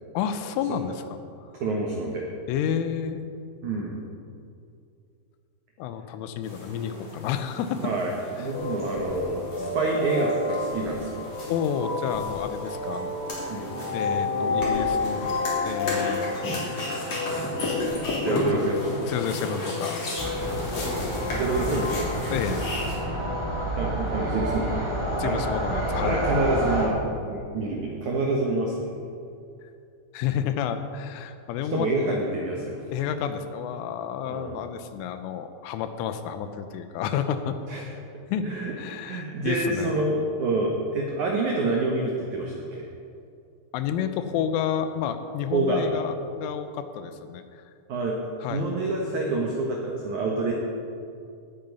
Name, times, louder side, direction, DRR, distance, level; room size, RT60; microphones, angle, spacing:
voice 1, 0.1-1.2 2.5-3.3 5.8-7.9 8.4-8.5 11.5-13.5 13.9-15.3 15.6-16.7 18.3-18.4 19.0-20.6 22.3-22.9 25.2-26.2 30.1-31.9 32.9-37.6 38.3-38.5 38.8-39.9 43.7-47.6 48.4-48.7, left 8 dB, 90° left, 9 dB, 3.3 m, -30 dB
voice 2, 1.6-2.2 3.6-4.0 7.8-8.1 8.4-11.2 13.5-13.7 18.2-18.8 21.3-22.1 23.8-24.9 25.2-25.4 26.0-27.0 27.3-28.9 31.7-32.8 34.3-34.6 37.7-37.9 38.4-38.7 39.0-42.8 45.5-45.8 47.9-48.2 48.5-50.5, right 2 dB, 80° right, -1 dB, 1.7 m, -27 dB
sound 1, 6.4-23.0, left 1 dB, 40° left, 3.8 m, -34 dB
sound 2, 8.5-26.8, left 3 dB, 70° left, 5.4 m, -32 dB
sound 3, 20.2-26.9, right 1 dB, 15° right, 1.0 m, -29 dB
18.0 x 9.0 x 5.5 m, 2.5 s
omnidirectional pair, 5.6 m